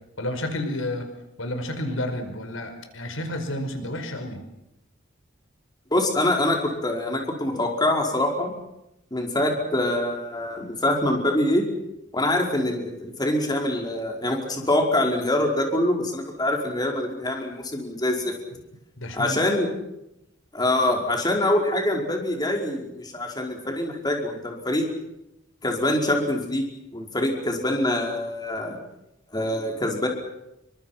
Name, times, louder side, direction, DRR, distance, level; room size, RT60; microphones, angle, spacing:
voice 1, 0.2-1.1 1.4-4.4 19.0-19.5, left 1 dB, 90° left, 6 dB, 5.1 m, -30 dB
voice 2, 5.9-8.5 9.1-11.6 12.1-18.3 19.1-19.7 20.5-24.9 25.6-26.6 26.9-28.8 29.3-30.1, left 1 dB, 20° left, 1 dB, 5.2 m, -24 dB
28.5 x 25.5 x 6.0 m, 0.86 s
head